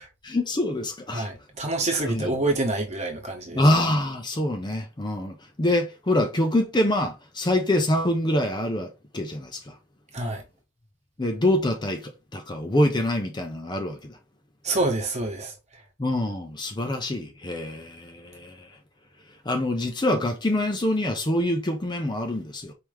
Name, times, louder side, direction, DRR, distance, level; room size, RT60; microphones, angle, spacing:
voice 1, 0.2-1.3 2.1-2.3 3.5-9.7 11.2-14.2 16.0-18.7 19.4-22.7, left 1 dB, 20° left, 0.7 m, -25 dB
voice 2, 1.1-3.6 10.1-10.4 14.6-15.5, right 2 dB, 30° right, 1.3 m, -27 dB
4.8 x 3.0 x 3.4 m
head